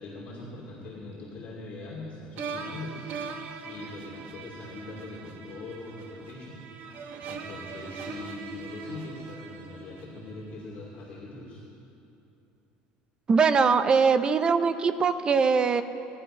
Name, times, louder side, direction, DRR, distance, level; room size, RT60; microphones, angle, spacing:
voice 1, 0.0-3.0 3.6-6.6 7.3-11.6, left 3 dB, 40° left, -4 dB, 2.5 m, -41 dB
sound 1, 2.4-10.6, right 5 dB, 55° right, 1.2 m, -41 dB
voice 2, 13.3-15.8, right 5 dB, 25° right, 11 dB, 0.6 m, -22 dB
18.5 x 11.0 x 5.4 m, 2.8 s
cardioid pair, 145°, 4 cm